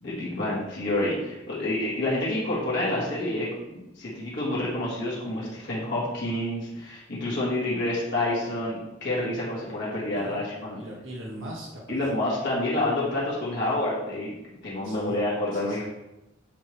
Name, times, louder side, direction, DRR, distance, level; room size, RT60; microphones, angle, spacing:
voice 1, 0.0-10.8 11.9-14.3 14.6-15.8, left 1 dB, 60° left, -7 dB, 1.8 m, -28 dB
voice 2, 10.1-10.4 10.8-12.0 14.8-15.2 15.5-15.8, right 1 dB, 70° right, -2 dB, 1.7 m, -40 dB
8.0 x 4.6 x 3.2 m, 0.95 s
head